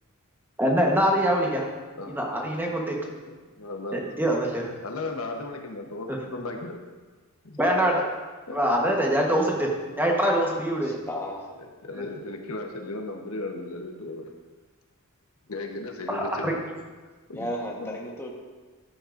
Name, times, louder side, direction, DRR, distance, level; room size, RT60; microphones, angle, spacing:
voice 1, 0.6-1.7 2.1-3.0 3.9-4.7 6.1-6.2 7.6-8.1 8.5-9.7 10.0-10.9 16.1-16.6, equal, 10° right, -1 dB, 1.2 m, -24 dB
voice 2, 3.3-4.1 4.8-6.8 7.4-7.6 8.5-8.6 11.8-14.3 15.5-16.6 17.3-17.5 17.8-18.0, left 2 dB, 75° left, 3 dB, 1.1 m, -35 dB
voice 3, 10.8-11.5 17.3-18.3, left 1 dB, 10° left, -2 dB, 1.3 m, -34 dB
14.0 x 8.3 x 2.6 m, 1.3 s
head